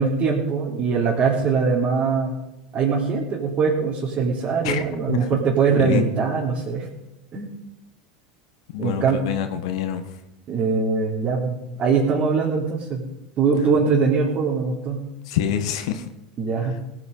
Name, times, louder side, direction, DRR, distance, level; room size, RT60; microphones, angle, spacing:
voice 1, 0.0-2.3 2.7-6.9 7.3-7.5 8.8-9.2 10.5-13.0 13.4-15.0 16.4-16.7, right 5 dB, 40° right, -5 dB, 3.4 m, -22 dB
voice 2, 4.6-5.2 5.8-6.0 8.7-10.0 15.3-16.0, left 10 dB, 70° left, 8 dB, 1.2 m, -26 dB
18.5 x 8.6 x 5.4 m, 0.92 s
hypercardioid pair, 90°, 3 cm